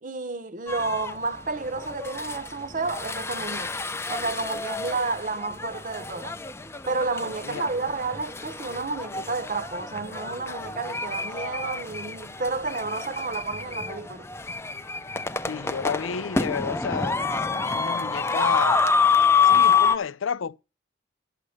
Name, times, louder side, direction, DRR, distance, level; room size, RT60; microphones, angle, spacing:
voice 1, 0.0-3.7 4.1-6.4 6.9-14.3, right 3 dB, 40° right, 0.8 m, -31 dB
sound 1, 0.7-1.1 1.7-20.0, left 5 dB, 15° left, 0.5 m, -27 dB
voice 2, 15.5-17.2 17.6-18.8 19.4-20.6, left 6 dB, 90° left, 0.5 m, -31 dB
11.0 x 6.5 x 6.5 m
head